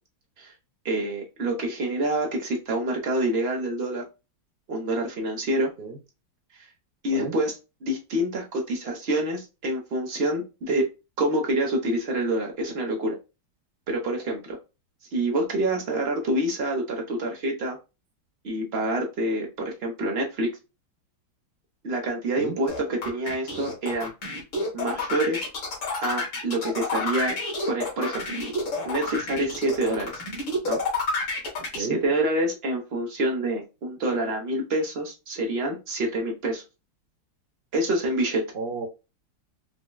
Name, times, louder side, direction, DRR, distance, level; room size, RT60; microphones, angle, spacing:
voice 1, 0.8-4.0 4.7-5.7 7.0-7.5 7.8-10.9 11.2-13.2 13.9-14.6 15.1-17.8 18.4-20.5 21.8-24.1 24.7-25.4 26.0-27.3 27.7-28.2 28.8-30.2 30.6-30.8 31.8-36.6 37.7-38.5, right 1 dB, 45° right, 1 dB, 0.8 m, -27 dB
sound 1, 22.7-31.8, left 3 dB, 65° left, 2.3 m, -29 dB
voice 2, 31.6-32.0 38.5-38.9, right 4 dB, 80° right, 1 dB, 0.5 m, -32 dB
4.8 x 2.2 x 2.2 m, 0.27 s
omnidirectional pair, 2.3 m